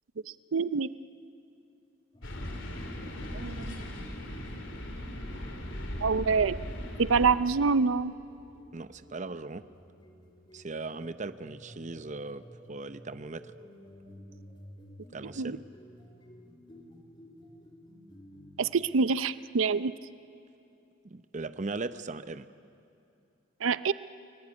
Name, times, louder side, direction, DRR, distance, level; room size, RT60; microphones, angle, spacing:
voice 1, 0.5-0.9 3.3-3.8 6.0-6.6 7.0-8.1 15.4-15.6 18.6-19.9 23.6-23.9, right 5 dB, 85° right, 15 dB, 0.6 m, -26 dB
sound 1, 2.1-18.7, equal, 25° left, 2.7 m, -53 dB
sound 2, 2.2-7.3, left 1 dB, 70° left, 3.1 m, -38 dB
voice 2, 8.7-9.6 10.5-12.4 12.7-13.4 15.1-15.6 21.0-22.5, right 3 dB, 40° right, 13 dB, 0.7 m, -38 dB
30.0 x 20.5 x 9.6 m, 2.7 s
head